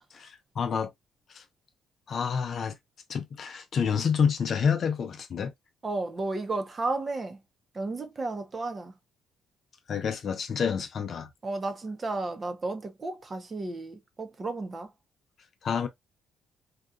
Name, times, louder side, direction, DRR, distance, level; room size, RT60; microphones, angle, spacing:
voice 1, 0.1-0.9 1.3-1.4 2.1-2.7 3.1-5.5 9.9-11.3 15.6-15.9, left 6 dB, 55° left, 0.6 m, -28 dB
voice 2, 5.8-7.4 7.7-8.9 11.4-14.9, right 2 dB, 35° right, 0.7 m, -33 dB
2.8 x 2.3 x 2.4 m
cardioid pair, 90°, 0 cm